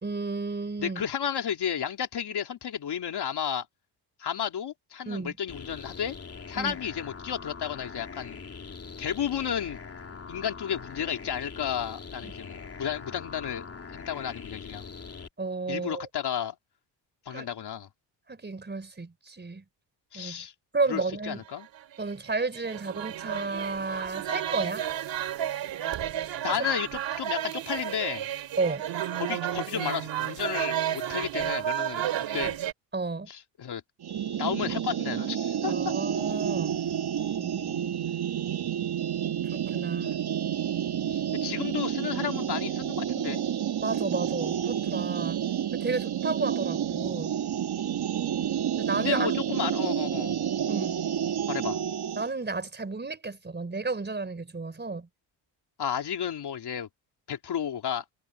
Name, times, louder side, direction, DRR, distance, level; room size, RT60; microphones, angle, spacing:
voice 1, 0.0-1.0 5.1-5.3 6.6-6.8 12.2-12.3 15.4-16.1 17.3-17.5 18.3-19.6 20.1-20.4 20.7-21.4 22.0-24.8 28.6-28.9 32.9-33.3 35.6-36.8 37.4-38.0 39.5-40.1 43.8-45.4 45.7-47.4 48.8-49.3 50.7-51.0 52.1-55.1, right 3 dB, 20° right, 4.6 m, -32 dB
voice 2, 0.8-3.7 4.2-6.1 6.5-8.4 9.0-9.8 10.3-13.7 13.9-14.9 15.7-16.5 17.2-17.9 20.1-20.5 20.9-21.7 26.4-28.3 29.2-32.1 32.3-32.6 33.3-33.8 34.4-35.7 41.1-43.4 49.0-50.4 51.5-51.8 55.8-56.9 57.3-58.0, left 9 dB, 55° left, 3.2 m, -32 dB
sound 1, 5.5-15.3, left 5 dB, 30° left, 2.8 m, -42 dB
sound 2, 21.5-32.7, right 11 dB, 70° right, 2.4 m, -32 dB
sound 3, 34.0-52.3, right 9 dB, 55° right, 1.9 m, -30 dB
cardioid pair, 100°, 47 cm